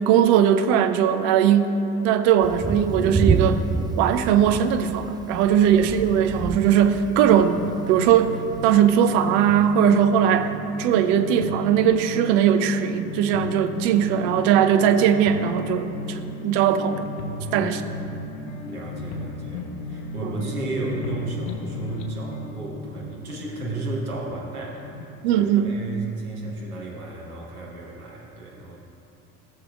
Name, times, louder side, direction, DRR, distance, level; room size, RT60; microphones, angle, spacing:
voice 1, 0.1-1.7 2.0-3.6 4.0-10.5 10.8-17.1 17.5-17.8 20.2-20.3 25.2-25.8, right 9 dB, 55° right, 8 dB, 0.6 m, -19 dB
Thunder, 2.4-9.2, right 4 dB, 10° right, 0.4 m, -28 dB
sound 1, 6.0-25.1, left 2 dB, 60° left, 0.9 m, -36 dB
voice 2, 17.3-18.0 18.6-24.8 25.3-28.8, right 2 dB, 85° right, -4 dB, 1.3 m, -33 dB
17.0 x 6.7 x 2.3 m, 3.0 s
figure-of-eight pair, 60°, 43 cm